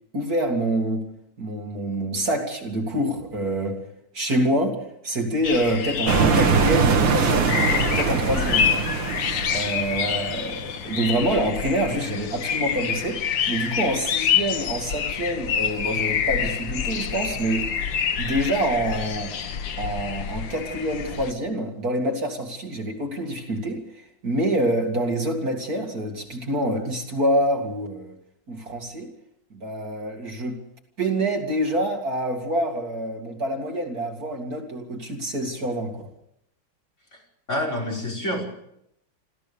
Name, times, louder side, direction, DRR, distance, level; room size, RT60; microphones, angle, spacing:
voice 1, 0.1-1.1 1.4-3.8 4.1-4.8 5.0-8.8 9.5-17.8 18.2-19.3 19.8-23.8 24.2-28.1 28.5-29.1 29.5-30.6 31.0-36.1, right 1 dB, 50° right, 3 dB, 2.9 m, -26 dB
sound 1, 5.4-21.3, left 8 dB, 75° left, 2.0 m, -27 dB
sound 2, 6.1-10.6, right 5 dB, 80° right, 2.4 m, -22 dB
voice 2, 37.5-38.5, left 1 dB, 35° left, 1 dB, 5.8 m, -27 dB
27.5 x 14.5 x 7.0 m, 0.78 s
omnidirectional pair, 2.0 m